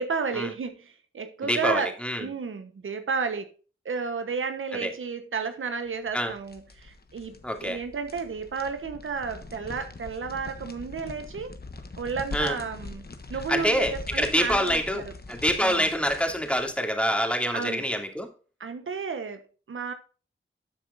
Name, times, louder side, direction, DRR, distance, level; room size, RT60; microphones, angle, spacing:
voice 1, 0.0-1.9 2.2-3.5 3.8-7.3 7.6-11.6 12.0-15.1 15.6-15.8 17.5-17.8 18.6-19.9, right 5 dB, 90° right, 1.1 m, -32 dB
voice 2, 1.4-2.3 4.8-4.9 6.1-6.3 7.4-7.8 12.3-12.6 13.5-18.3, equal, 5° left, 2.7 m, -26 dB
sound 1, 6.1-16.7, left 3 dB, 50° left, 1.3 m, -42 dB
12.5 x 7.2 x 2.6 m
cardioid pair, 45°, 20 cm